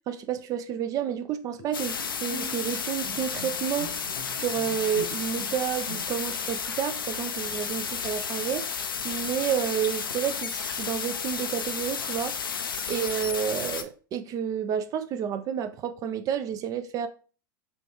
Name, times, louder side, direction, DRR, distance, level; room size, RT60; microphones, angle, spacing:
voice 1, 0.1-3.9 4.2-8.7 9.0-12.3 12.9-17.1, right 9 dB, 30° right, 0.4 m, -30 dB
Bowed string instrument, 1.6-6.4, right 1 dB, 50° left, 0.9 m, -44 dB
sound 1, 1.7-13.8, left 6 dB, 80° left, 0.5 m, -32 dB
4.1 x 2.3 x 3.2 m
figure-of-eight pair, 90°, 11 cm